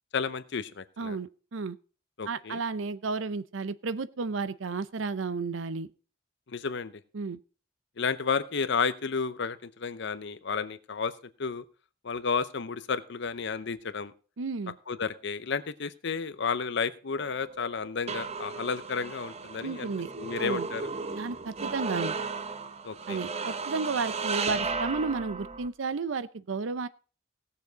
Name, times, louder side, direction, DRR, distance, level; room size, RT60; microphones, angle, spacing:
voice 1, 0.1-1.2 2.2-2.6 6.5-6.9 8.0-11.1 11.4-11.6 12.0-14.1 14.9-19.9 20.2-20.9 22.8-23.2, left 5 dB, 65° left, 14 dB, 0.8 m, -32 dB
voice 2, 1.0-1.8 2.3-5.9 7.1-7.4 14.4-14.7 19.6-20.1 20.4-20.7 21.2-22.2 23.1-26.9, right 4 dB, 75° right, 15 dB, 0.6 m, -32 dB
sound 1, 17.2-25.7, right 4 dB, 35° right, 0.7 m, -35 dB
17.5 x 7.0 x 4.0 m, 0.37 s
head